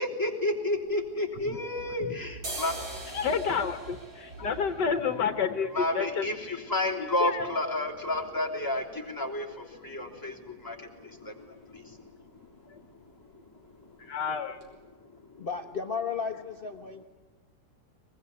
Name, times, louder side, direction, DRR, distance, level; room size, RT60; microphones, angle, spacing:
voice 1, 0.0-3.0 5.7-12.3 14.0-14.1 15.0-15.4, left 1 dB, 10° left, 0 dB, 3.3 m, -32 dB
sound 1, 0.9-1.9 2.3-10.0 10.3-10.4 10.6-11.2 11.5-11.7 12.0-12.2 12.5-13.2 13.6-13.7 14.2-14.3 14.6-14.7, right 1 dB, 85° right, 5.0 m, -45 dB
sound 2, 1.8-7.4, right 3 dB, 50° right, 5.2 m, -48 dB
voice 2, 3.1-6.5 7.2-7.5 12.7-12.8 14.0-14.6, left 6 dB, 65° left, 10 dB, 1.7 m, -30 dB
voice 3, 15.4-17.0, left 5 dB, 35° left, 6 dB, 1.1 m, -34 dB
23.0 x 21.0 x 9.7 m, 1.2 s
omnidirectional pair, 2.0 m